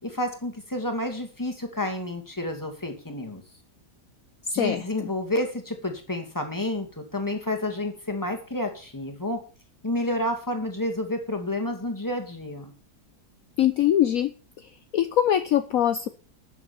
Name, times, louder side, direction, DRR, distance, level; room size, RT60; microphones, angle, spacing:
voice 1, 0.0-3.4 4.5-9.4 9.8-12.7, left 1 dB, 10° left, 4 dB, 2.4 m, -30 dB
voice 2, 4.6-5.1 13.6-16.1, left 11 dB, 65° left, 10 dB, 1.1 m, -23 dB
12.5 x 7.2 x 7.0 m, 0.38 s
omnidirectional pair, 1.8 m